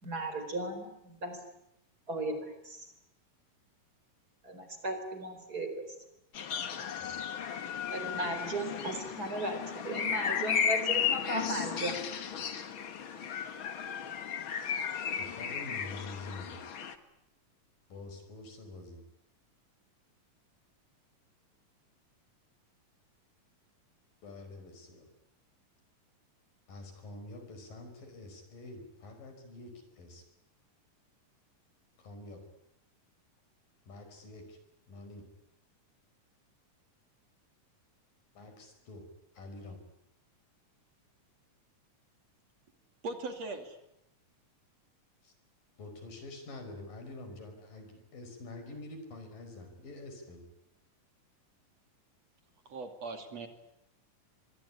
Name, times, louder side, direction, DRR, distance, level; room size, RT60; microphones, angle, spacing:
voice 1, 0.0-1.4 2.1-2.9 4.4-6.0 7.9-12.0, right 2 dB, 25° right, 7 dB, 4.7 m, -36 dB
sound 1, 6.3-16.9, left 7 dB, 45° left, 1.9 m, -34 dB
voice 2, 15.2-16.6 17.9-19.0 24.2-25.1 26.7-30.2 32.0-32.4 33.9-34.6 34.9-35.3 38.4-39.1 39.3-39.8 45.2-45.3 45.8-50.4, left 2 dB, 90° left, 7 dB, 7.0 m, -47 dB
voice 3, 43.0-43.8 52.7-53.5, right 3 dB, 50° right, 6 dB, 3.6 m, -39 dB
25.0 x 23.0 x 10.0 m, 0.84 s
omnidirectional pair, 3.8 m